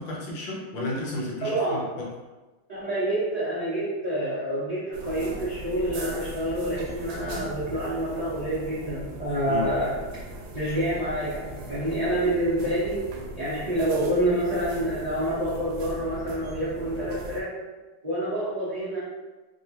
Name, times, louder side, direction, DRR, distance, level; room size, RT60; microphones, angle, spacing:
voice 1, 0.0-2.1 9.5-9.7, left 2 dB, 70° left, -4 dB, 1.4 m, -32 dB
voice 2, 1.4-1.8 2.7-10.0 10.5-13.1 13.4-17.5 18.0-19.0, right 1 dB, 50° right, -12 dB, 0.4 m, -27 dB
sound 1, 4.9-17.4, right 1 dB, 85° right, 0.8 m, -39 dB
3.5 x 2.3 x 2.7 m, 1.2 s
omnidirectional pair, 2.3 m